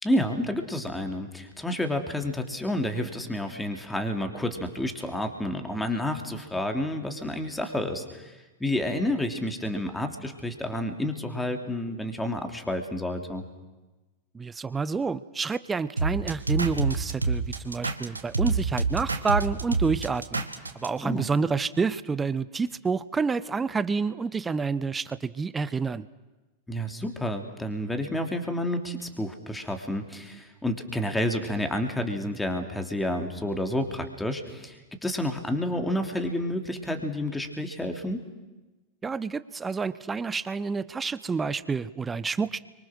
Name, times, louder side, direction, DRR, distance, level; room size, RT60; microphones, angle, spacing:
voice 1, 0.0-13.4 21.0-21.3 26.7-38.2, left 1 dB, 5° left, 5 dB, 3.1 m, -30 dB
voice 2, 14.3-20.5 20.7-26.1 39.0-42.6, right 5 dB, 15° right, 16 dB, 0.8 m, -28 dB
sound 1, 16.0-20.9, right 3 dB, 80° right, 1.9 m, -27 dB
30.0 x 24.5 x 6.4 m, 1.1 s
figure-of-eight pair, 90°, 0 cm